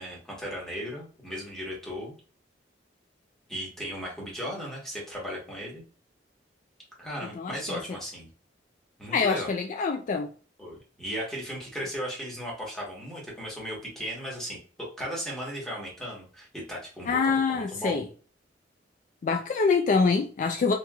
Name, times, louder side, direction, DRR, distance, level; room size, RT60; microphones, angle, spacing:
voice 1, 0.0-2.1 3.5-5.8 7.0-8.3 9.0-9.5 10.6-18.0, equal, 5° left, 1.1 m, -36 dB
voice 2, 7.4-7.8 9.1-10.3 17.1-18.1 19.2-20.7, left 4 dB, 45° left, 0.3 m, -25 dB
2.9 x 2.9 x 2.3 m
head